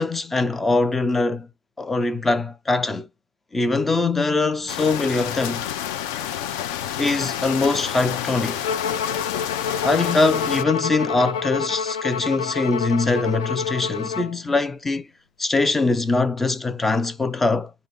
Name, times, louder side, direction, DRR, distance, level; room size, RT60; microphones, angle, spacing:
voice 1, 0.0-1.5 1.8-3.1 3.5-5.6 7.0-8.7 9.8-15.1 15.4-17.7, left 3 dB, 5° left, 0.4 m, -22 dB
sound 1, 4.7-10.6, left 10 dB, 45° left, 0.7 m, -29 dB
Bowed string instrument, 8.6-14.4, left 6 dB, 85° left, 0.8 m, -28 dB
5.1 x 2.5 x 3.7 m
supercardioid pair, 175°, 3 cm